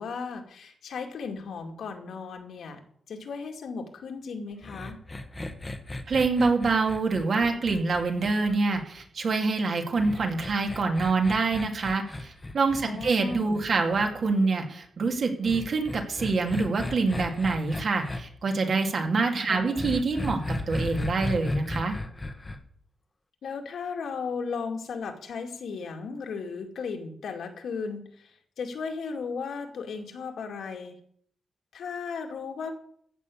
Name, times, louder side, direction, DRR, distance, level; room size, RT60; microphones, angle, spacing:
voice 1, 0.0-2.8 3.1-5.0 12.9-13.6 19.5-19.8 23.4-31.0 31.7-32.7, left 5 dB, 75° left, 4 dB, 2.2 m, -36 dB
sound 1, 4.6-9.0 10.0-14.1 15.4-18.2 19.8-22.6, left 2 dB, 15° left, 1.1 m, -35 dB
voice 2, 6.1-20.4 20.7-22.0, right 4 dB, 50° right, 3 dB, 2.4 m, -26 dB
15.5 x 6.4 x 8.4 m, 0.62 s
wide cardioid pair, 160°, 0 cm